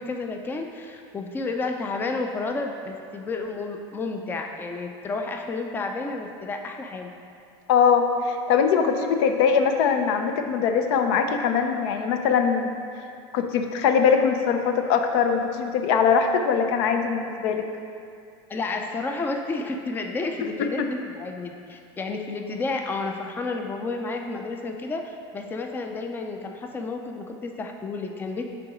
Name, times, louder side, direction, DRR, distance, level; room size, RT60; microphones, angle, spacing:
voice 1, 0.0-7.1 18.5-28.4, left 3 dB, 15° left, 4 dB, 0.4 m, -31 dB
voice 2, 7.7-12.8 13.3-17.6 20.6-20.9, left 6 dB, 70° left, 6 dB, 0.5 m, -22 dB
5.8 x 3.8 x 4.9 m, 2.4 s
supercardioid pair, 115°, 14 cm